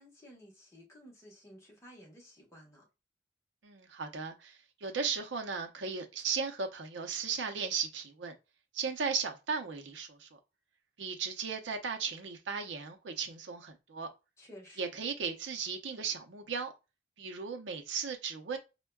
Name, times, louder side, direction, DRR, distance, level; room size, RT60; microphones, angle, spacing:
voice 1, 0.0-2.9 14.4-14.9, equal, 15° left, 1.0 m, -54 dB
voice 2, 3.6-8.3 8.7-10.4 11.0-14.1 14.8-16.7 17.2-18.6, right 5 dB, 85° right, 0.6 m, -36 dB
4.4 x 2.2 x 2.2 m
head